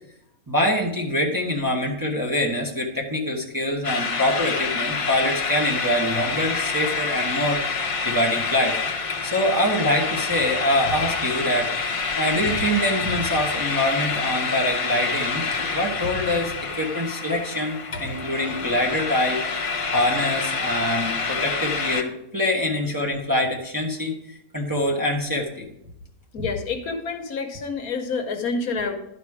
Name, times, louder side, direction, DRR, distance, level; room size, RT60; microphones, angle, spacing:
voice 1, 0.5-8.8 9.2-11.7 12.2-19.4 19.9-24.2 24.5-25.7 26.4-26.5, left 1 dB, 15° right, -1 dB, 1.0 m, -24 dB
sound 1, 3.8-22.0, left 4 dB, 55° left, 0.3 m, -27 dB
voice 2, 26.3-28.9, left 4 dB, 75° left, 6 dB, 1.4 m, -28 dB
11.5 x 5.0 x 4.8 m, 0.82 s
omnidirectional pair, 1.6 m